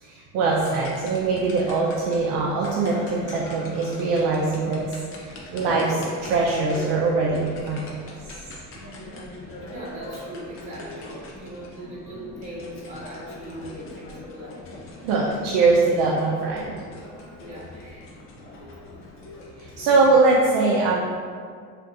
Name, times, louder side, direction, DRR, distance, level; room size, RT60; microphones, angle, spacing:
voice 1, 0.0-4.8 5.2-8.1 15.0-16.8 19.6-21.0, right 3 dB, 70° right, -4 dB, 0.5 m, -22 dB
sound 1, 0.5-20.4, left 2 dB, 40° left, 0.5 m, -40 dB
voice 2, 8.8-9.2 9.7-14.6 17.4-18.1 19.9-20.1, right 1 dB, 20° right, -7 dB, 1.2 m, -39 dB
3.8 x 2.5 x 2.4 m, 2.1 s
cardioid pair, 125°, 34 cm